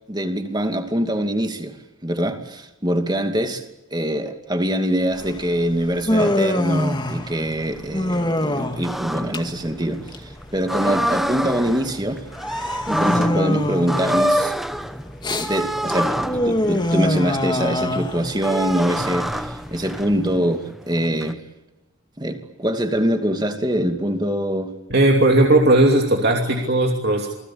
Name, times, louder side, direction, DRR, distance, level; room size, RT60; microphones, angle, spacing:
voice 1, 0.1-1.8 2.0-3.6 3.9-12.2 12.9-14.5 15.3-21.4 22.2-24.7, equal, 20° right, 6 dB, 2.6 m, -24 dB
Human voice, 5.1-20.4, left 1 dB, 20° left, 2.2 m, -25 dB
sound 1, 6.2-21.3, equal, ahead, 1.0 m, -28 dB
voice 2, 24.9-27.3, right 1 dB, 50° right, 1 dB, 2.9 m, -16 dB
28.5 x 20.5 x 8.7 m, 0.90 s
head